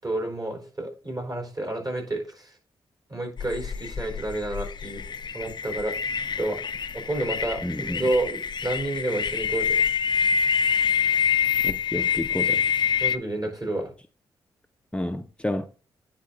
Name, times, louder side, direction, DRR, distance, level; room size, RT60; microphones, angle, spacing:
voice 1, 0.0-2.6 3.1-5.0 5.3-6.0 6.4-6.6 6.9-9.9 13.0-13.9, right 2 dB, 40° right, 4.3 m, -30 dB
sound 1, 3.4-13.2, left 7 dB, 50° left, 0.6 m, -26 dB
voice 2, 7.6-8.1 11.6-12.7 14.9-15.7, left 1 dB, 10° left, 0.7 m, -30 dB
9.7 x 4.2 x 3.9 m
supercardioid pair, 50°, 10 cm